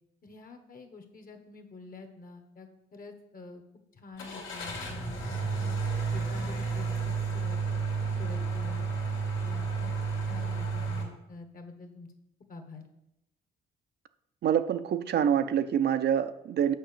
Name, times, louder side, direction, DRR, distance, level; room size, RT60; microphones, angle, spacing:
voice 1, 0.2-3.6 3.9-5.8 6.1-7.8 8.2-8.8 9.4-9.9 10.3-12.1 12.5-12.8, left 3 dB, 45° left, 6 dB, 1.4 m, -47 dB
Car / Engine starting, 4.2-11.0, right 4 dB, 80° left, 2.2 m, -31 dB
voice 2, 14.4-16.7, right 9 dB, 55° right, 10 dB, 0.5 m, -26 dB
6.5 x 5.2 x 6.8 m, 0.86 s
cardioid pair, 90°, 20 cm